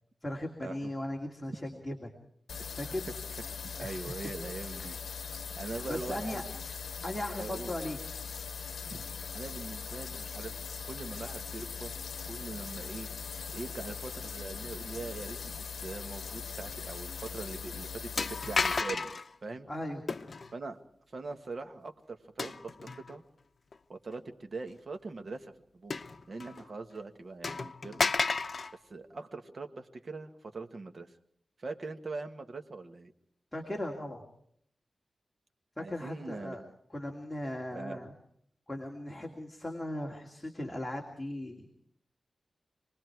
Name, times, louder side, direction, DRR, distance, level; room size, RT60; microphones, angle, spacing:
voice 1, 0.2-2.1 2.7-3.1 3.8-4.1 5.6-6.4 7.0-8.0 19.7-20.0 33.5-34.2 35.8-36.6 36.9-38.1 38.7-41.7, left 1 dB, 10° left, 1 dB, 2.5 m, -38 dB
sound 1, 2.5-18.8, left 6 dB, 90° left, 0.8 m, -41 dB
voice 2, 3.8-5.0 5.6-6.4 7.3-7.8 8.9-9.0 9.3-11.9 12.2-13.1 13.5-15.5 15.8-19.1 19.4-19.7 20.5-20.8 21.1-23.2 23.9-26.0 26.3-28.1 28.9-31.1 31.6-33.1 35.8-36.7 37.7-38.0, right 3 dB, 55° right, 6 dB, 1.7 m, -42 dB
sound 2, 16.7-16.9 17.3-17.4 18.2-19.3 20.1-20.5 22.4-23.1 23.7-23.8 25.9-26.6 26.9-27.0 27.4-28.7, left 4 dB, 50° left, 0.8 m, -32 dB
27.0 x 20.0 x 4.7 m, 0.69 s
wide cardioid pair, 100°, 0 cm